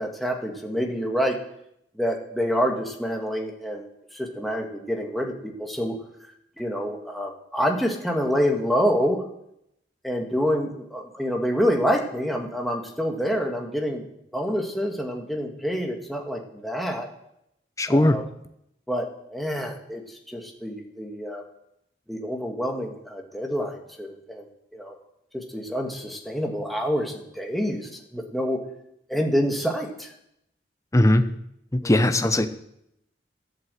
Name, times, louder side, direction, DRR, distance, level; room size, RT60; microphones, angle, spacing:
voice 1, 0.0-1.4 1.9-3.9 4.1-6.0 6.6-9.2 10.0-14.0 14.3-17.1 17.9-18.2 18.9-21.4 22.1-24.5 24.7-25.0 25.3-28.6 29.1-30.1 31.8-31.9, equal, ahead, 1 dB, 1.7 m, -27 dB
voice 2, 17.8-18.2 30.9-31.2 31.7-32.5, left 1 dB, 15° left, 9 dB, 0.8 m, -19 dB
11.5 x 8.4 x 7.7 m, 0.78 s
head